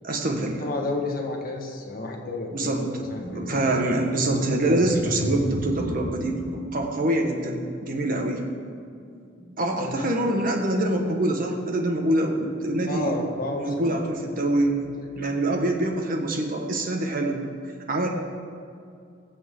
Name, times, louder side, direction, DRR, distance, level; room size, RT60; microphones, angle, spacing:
voice 1, 0.0-0.6 2.5-2.8 3.3-8.4 9.6-13.1 13.6-14.8 15.1-17.4 17.9-18.1, right 1 dB, 50° right, 2 dB, 1.6 m, -25 dB
voice 2, 0.6-3.8 8.0-8.2 9.8-10.0 12.9-14.1 14.6-14.7 15.2-15.3 18.0-18.1, left 2 dB, 50° left, 1 dB, 1.7 m, -32 dB
sound 1, 3.0-13.0 13.3-13.6 14.3-15.3, left 1 dB, 15° right, 1.6 m, -37 dB
21.0 x 7.7 x 3.9 m, 2.4 s
head